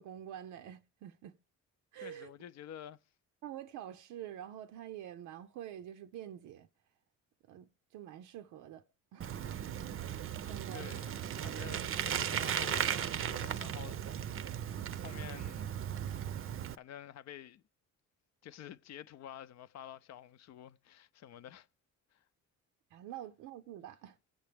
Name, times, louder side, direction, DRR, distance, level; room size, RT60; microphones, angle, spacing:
voice 1, 0.0-1.4 1.9-2.3 3.4-6.7 7.4-8.8 9.1-11.0 22.9-24.2, right 11 dB, 90° right, 0.6 m, -47 dB
voice 2, 2.0-3.0 10.7-14.4 15.0-15.8 16.7-17.6 18.4-21.7 22.1-22.2, left 10 dB, 60° left, 0.5 m, -50 dB
Bicycle, 9.2-16.8, right 9 dB, 45° right, 0.5 m, -36 dB
24.0 x 8.0 x 3.4 m
cardioid pair, 90°, 30 cm